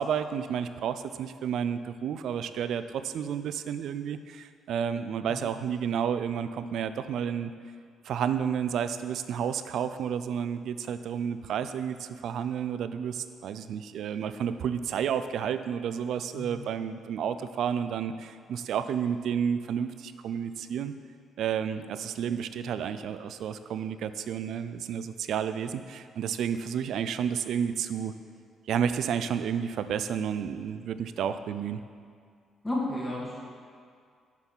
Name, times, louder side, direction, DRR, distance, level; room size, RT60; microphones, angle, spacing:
voice 1, 0.0-7.5 8.0-20.9 21.4-28.1 28.7-31.8, right 8 dB, 75° right, 11 dB, 0.3 m, -31 dB
voice 2, 16.3-16.6 32.6-33.4, left 1 dB, 20° left, -5 dB, 1.6 m, -33 dB
7.2 x 4.1 x 5.3 m, 2.2 s
cardioid pair, 90°, 0 cm